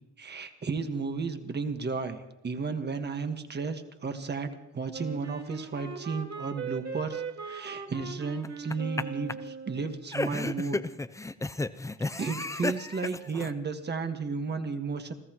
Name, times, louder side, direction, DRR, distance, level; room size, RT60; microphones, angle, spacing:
voice 1, 0.2-10.8 12.2-15.1, right 4 dB, 35° right, 7 dB, 1.7 m, -33 dB
Wind instrument woodwind instrument, 4.9-10.0, right 5 dB, 60° right, 2.9 m, -39 dB
sound 1, 8.4-9.0 9.3-9.4 10.1-13.5, left 2 dB, 10° left, 0.6 m, -32 dB
29.5 x 14.0 x 3.1 m, 0.91 s
cardioid pair, 90°, 30 cm